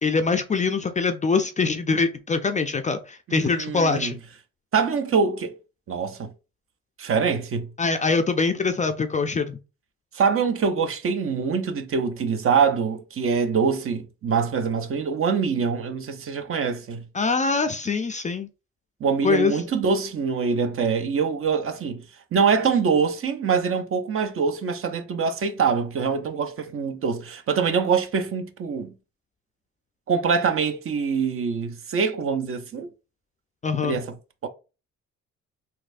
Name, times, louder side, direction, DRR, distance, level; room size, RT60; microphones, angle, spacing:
voice 1, 0.0-4.2 7.8-9.6 17.1-18.5 19.2-19.6 33.6-34.0, left 4 dB, 25° left, 0.4 m, -23 dB
voice 2, 3.3-4.1 4.7-5.6 5.9-6.3 7.0-7.7 10.1-17.0 19.0-22.0 22.3-28.9 30.1-32.9 33.8-34.1 34.4-34.5, right 5 dB, 45° right, 0.6 m, -24 dB
4.1 x 2.7 x 2.5 m
cardioid pair, 90°, 30 cm